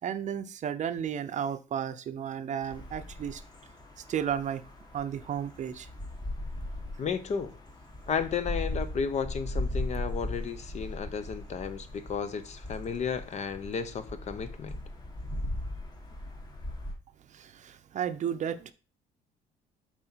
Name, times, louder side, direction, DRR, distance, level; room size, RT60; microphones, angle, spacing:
voice 1, 0.0-3.4 4.1-4.6 4.9-5.9 17.3-18.7, right 8 dB, 45° right, 0.6 m, -33 dB
sound 1, 2.6-16.9, left 1 dB, 25° left, 1.8 m, -38 dB
voice 2, 7.0-7.5 8.1-14.8, left 6 dB, 40° left, 0.7 m, -33 dB
7.7 x 4.3 x 4.5 m
cardioid pair, 110°, 17 cm